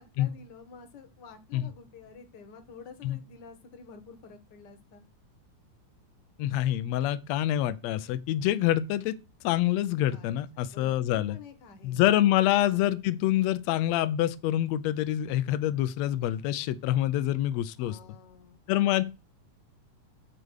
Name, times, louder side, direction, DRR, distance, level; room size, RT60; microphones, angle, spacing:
voice 1, 0.0-5.1 10.1-12.3 17.8-18.8, left 5 dB, 45° left, 1.5 m, -50 dB
voice 2, 6.4-9.1 9.4-11.4 11.8-18.0 18.7-19.0, left 13 dB, 80° left, 1.6 m, -26 dB
9.0 x 4.9 x 6.4 m
omnidirectional pair, 3.7 m